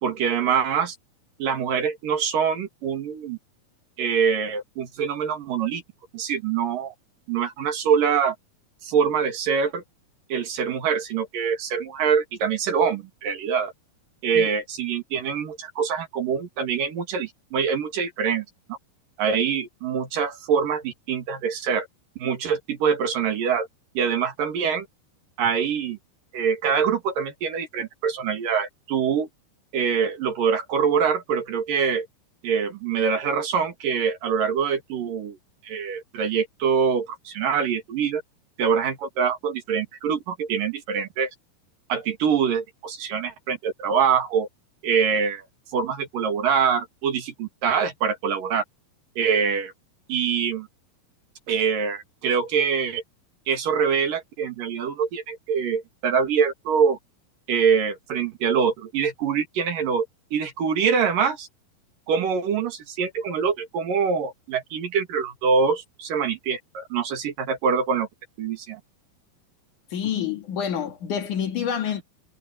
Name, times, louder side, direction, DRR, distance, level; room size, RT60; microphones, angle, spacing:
voice 1, 0.0-1.0 1.4-3.4 4.0-5.8 6.1-6.9 7.3-8.4 8.8-9.8 10.3-13.7 14.2-18.8 19.2-21.9 22.2-23.7 24.0-24.9 25.4-26.0 26.3-29.3 29.7-32.1 32.4-35.4 35.6-38.2 38.6-41.3 41.9-44.5 44.8-45.5 45.7-48.6 49.2-49.7 50.1-50.7 51.5-53.0 53.5-57.0 57.5-60.1 60.3-61.5 62.1-68.1 68.4-68.8, right 6 dB, 65° right, 3.7 m, -24 dB
voice 2, 69.9-72.0, left 8 dB, 60° left, 3.3 m, -27 dB
omnidirectional pair, 4.3 m